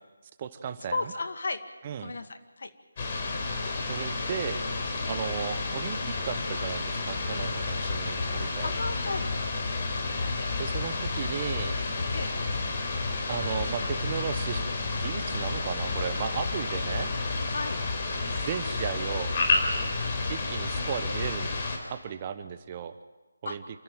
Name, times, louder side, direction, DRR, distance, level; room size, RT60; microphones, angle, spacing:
voice 1, 0.4-1.0 1.8-2.1 3.9-4.6 5.1-8.7 10.6-11.8 13.3-14.6 15.0-17.1 18.2-19.3 20.3-21.5 21.9-22.9 23.4-23.6, right 8 dB, 30° right, 11 dB, 1.0 m, -35 dB
voice 2, 0.9-1.6 2.0-2.7 5.0-5.2 8.6-9.3 12.1-12.4 17.5-17.8 23.5-23.6, left 3 dB, 55° left, 7 dB, 2.1 m, -34 dB
sound 1, 3.0-21.8, left 3 dB, 35° left, 4.2 m, -30 dB
27.5 x 14.0 x 9.0 m, 1.2 s
figure-of-eight pair, 155°, 0 cm